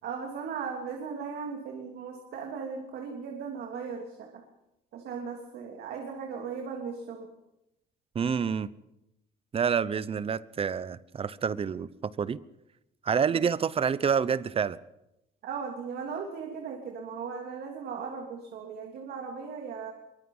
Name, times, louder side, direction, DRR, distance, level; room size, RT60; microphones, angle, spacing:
voice 1, 0.0-4.4 4.9-7.3 13.3-13.4 15.4-19.9, right 6 dB, 70° right, 3.2 m, -37 dB
voice 2, 8.1-8.7 9.5-11.9 12.2-12.4 13.0-14.8, right 7 dB, 35° right, 0.9 m, -28 dB
23.5 x 22.0 x 5.6 m
cardioid pair, 110°, 17 cm